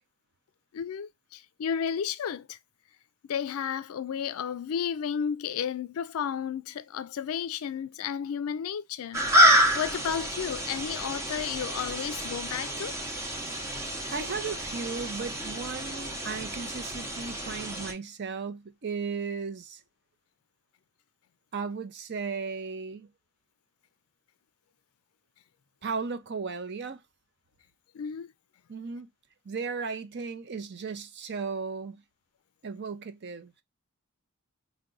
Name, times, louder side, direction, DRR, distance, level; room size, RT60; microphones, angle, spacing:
voice 1, 0.7-2.6 3.2-13.0 27.9-28.3, left 8 dB, 75° left, 0.4 m, -33 dB
sound 1, 9.1-17.9, right 1 dB, 15° right, 0.7 m, -28 dB
voice 2, 14.1-19.8 21.5-23.1 25.8-27.0 28.7-29.1 29.4-32.0 32.6-33.5, right 5 dB, 50° right, 0.6 m, -35 dB
4.7 x 2.2 x 3.7 m
head